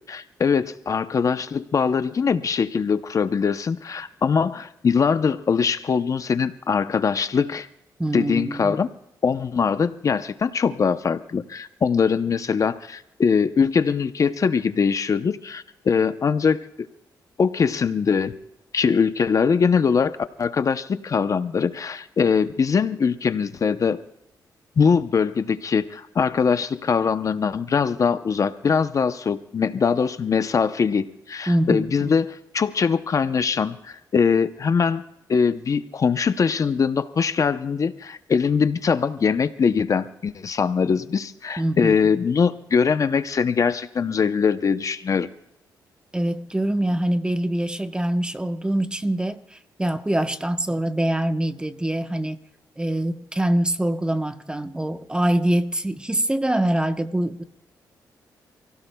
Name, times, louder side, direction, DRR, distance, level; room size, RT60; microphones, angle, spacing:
voice 1, 0.1-7.7 8.1-8.9 9.2-16.6 17.4-18.3 18.7-24.0 24.8-35.0 35.3-45.3, left 6 dB, 45° left, 0.7 m, -22 dB
voice 2, 8.0-8.8 31.5-32.1 41.6-42.1 46.1-52.4 52.8-57.4, right 1 dB, 10° right, 1.0 m, -24 dB
28.5 x 16.5 x 2.3 m
cardioid pair, 85°, 8 cm